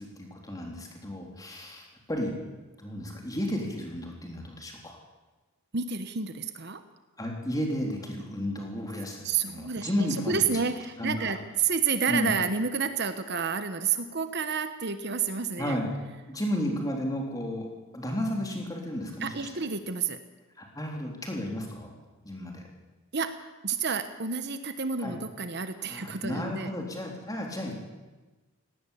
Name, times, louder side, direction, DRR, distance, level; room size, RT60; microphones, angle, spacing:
voice 1, 0.0-2.3 2.8-5.0 7.2-10.6 11.0-11.3 12.1-12.4 15.6-15.9 16.3-17.7 17.9-19.5 20.6-22.0 22.2-22.6 25.0-25.2 25.8-27.7, left 1 dB, 15° left, 1 dB, 3.7 m, -33 dB
voice 2, 5.7-6.8 9.2-15.8 19.2-20.2 23.1-26.7, right 6 dB, 50° right, 10 dB, 1.1 m, -30 dB
18.0 x 18.0 x 8.6 m, 1.2 s
head